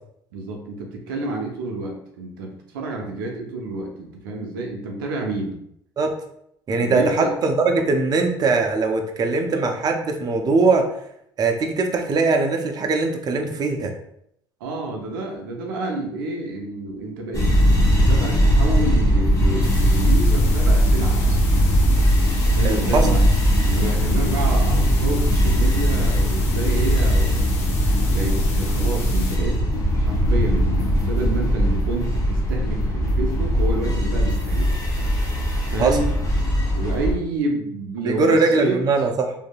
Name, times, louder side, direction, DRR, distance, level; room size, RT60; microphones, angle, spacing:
voice 1, 0.3-5.6 6.8-7.3 14.6-17.5 17.9-21.6 22.4-23.2 23.6-27.6 28.1-29.6 29.9-34.8 35.7-36.1 36.7-38.8, right 2 dB, 90° right, 1 dB, 0.5 m, -29 dB
voice 2, 6.7-10.9 11.4-13.9 22.6-23.1 35.8-36.0 38.0-39.5, right 3 dB, 35° right, 4 dB, 0.5 m, -21 dB
sound 1, 17.3-37.1, equal, 30° left, 0.8 m, -19 dB
sound 2, 19.6-29.4, left 3 dB, 70° left, 0.6 m, -36 dB
2.6 x 2.6 x 2.2 m, 0.73 s
hypercardioid pair, 70°, 11 cm